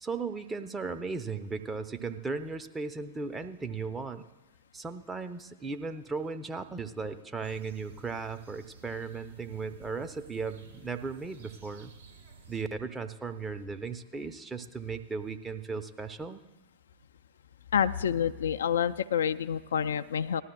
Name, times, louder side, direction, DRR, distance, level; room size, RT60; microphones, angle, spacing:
voice 1, 0.0-4.3 4.7-11.9 12.5-16.4, right 4 dB, 15° right, 7 dB, 0.6 m, -36 dB
sound 1, 7.4-12.6, right 6 dB, 65° right, 1.1 m, -53 dB
voice 2, 17.7-20.4, left 8 dB, 65° left, 11 dB, 0.3 m, -28 dB
19.0 x 12.5 x 2.3 m, 1.1 s
figure-of-eight pair, 90°, 0 cm